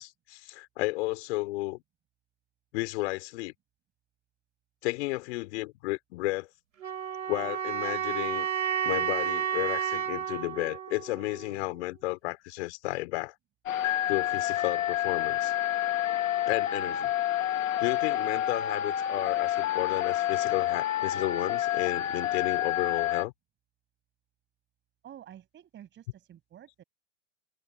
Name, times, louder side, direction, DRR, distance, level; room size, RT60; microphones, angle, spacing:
voice 1, 0.0-1.8 2.7-3.5 4.8-6.5 7.3-8.5 8.8-13.3 14.1-15.5 16.4-17.1 17.8-23.3, left 21 dB, 60° left, 5.1 m, -33 dB
sound 1, 6.8-11.8, right 9 dB, 90° right, 3.8 m, -31 dB
sound 2, 13.7-23.3, left 12 dB, 80° left, 2.1 m, -29 dB
voice 2, 25.0-26.8, right 10 dB, 30° right, 7.1 m, -50 dB
hypercardioid pair, 120°, 39 cm